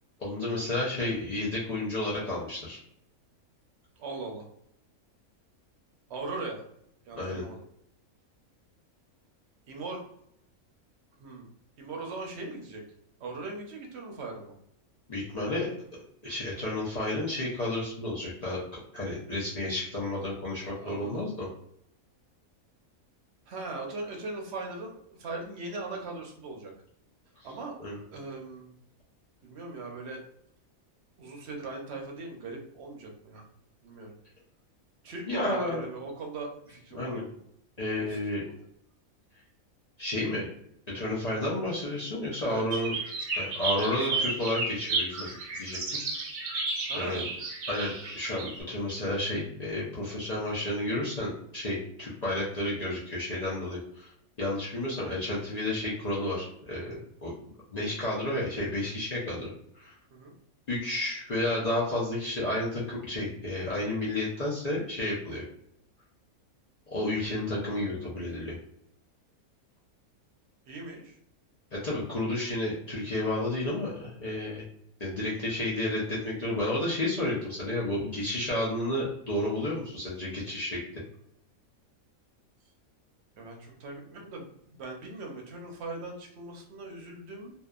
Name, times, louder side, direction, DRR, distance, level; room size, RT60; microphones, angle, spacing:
voice 1, 0.2-2.8 7.2-7.4 15.1-15.7 16.2-18.6 18.9-21.5 27.8-28.0 35.3-35.9 36.9-37.2 37.8-38.4 40.0-40.5 40.9-42.9 43.3-45.3 45.6-46.0 46.9-47.3 47.7-54.1 54.4-57.3 57.7-59.9 60.7-65.4 66.9-68.6 71.7-74.6 75.0-80.8, left 1 dB, 65° left, -7 dB, 0.4 m, -31 dB
voice 2, 4.0-4.5 6.1-6.6 7.1-7.6 9.7-10.0 11.2-11.5 11.8-12.8 13.2-14.6 20.6-21.2 23.5-26.7 27.4-27.7 28.1-28.7 29.4-30.2 31.2-33.5 33.8-34.1 35.0-37.2 38.0-38.2 38.5-38.6 42.4-42.8 43.8-44.3 46.8-47.2 60.1-60.3 67.4-68.0 70.7-71.2 83.4-87.5, right 3 dB, 60° right, 1 dB, 0.7 m, -40 dB
sound 1, 42.7-48.6, right 3 dB, 90° right, 1.1 m, -32 dB
2.7 x 2.2 x 2.3 m, 0.72 s
omnidirectional pair, 1.5 m